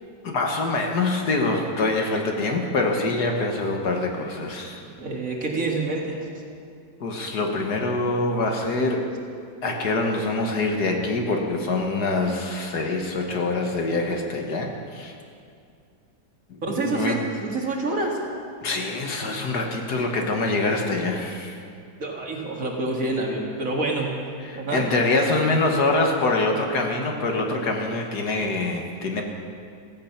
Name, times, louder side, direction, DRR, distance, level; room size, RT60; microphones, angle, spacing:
voice 1, 0.2-4.8 7.0-9.1 9.6-15.1 16.5-17.2 18.6-21.6 24.4-29.2, left 2 dB, 60° left, 2 dB, 1.8 m, -25 dB
voice 2, 5.0-6.2 16.6-18.2 22.0-24.2 24.5-24.9, right 2 dB, 45° right, -1 dB, 2.3 m, -27 dB
15.5 x 15.0 x 5.8 m, 2.3 s
omnidirectional pair, 2.1 m